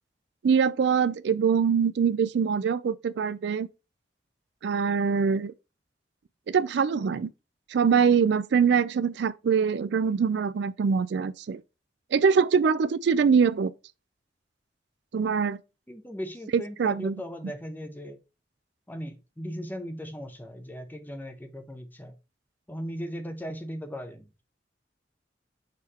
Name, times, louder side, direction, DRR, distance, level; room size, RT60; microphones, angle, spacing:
voice 1, 0.4-3.7 4.6-5.5 6.5-7.3 7.7-11.6 12.1-13.7 15.1-15.6 16.5-17.1, right 6 dB, 70° right, 0.4 m, -23 dB
voice 2, 15.9-18.2 18.9-22.1 22.7-24.3, equal, 10° left, 0.9 m, -38 dB
6.7 x 3.5 x 4.2 m
head